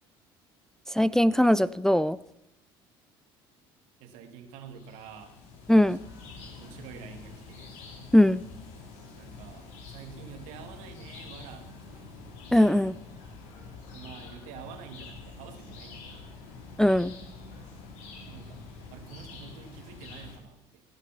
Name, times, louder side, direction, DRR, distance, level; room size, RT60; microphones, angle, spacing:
voice 1, 0.9-2.2 5.7-6.0 8.1-8.4 12.5-12.9 16.8-17.1, left 1 dB, 5° left, 15 dB, 0.4 m, -20 dB
voice 2, 4.0-5.3 5.9-6.0 6.5-7.8 9.2-12.1 13.9-16.3 18.3-20.8, right 7 dB, 75° right, 6 dB, 2.0 m, -48 dB
sound 1, 4.7-20.4, left 4 dB, 70° left, 3.0 m, -46 dB
17.0 x 8.2 x 5.7 m, 0.82 s
hypercardioid pair, 75°, 12 cm